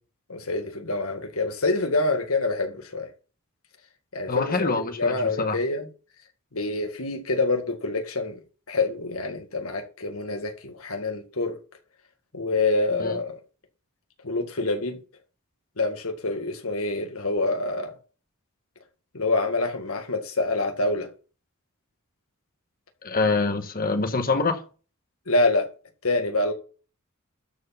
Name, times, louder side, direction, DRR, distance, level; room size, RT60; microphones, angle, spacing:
voice 1, 0.3-3.1 4.1-4.7 5.0-5.9 6.5-8.4 8.7-11.6 12.3-13.4 14.2-15.0 15.8-18.0 19.1-21.1 25.3-25.7 26.0-26.5, left 2 dB, 75° left, 1.9 m, -26 dB
voice 2, 4.3-5.5 13.0-13.2 23.0-24.6, left 3 dB, 45° left, 1.4 m, -25 dB
12.5 x 4.8 x 5.8 m
head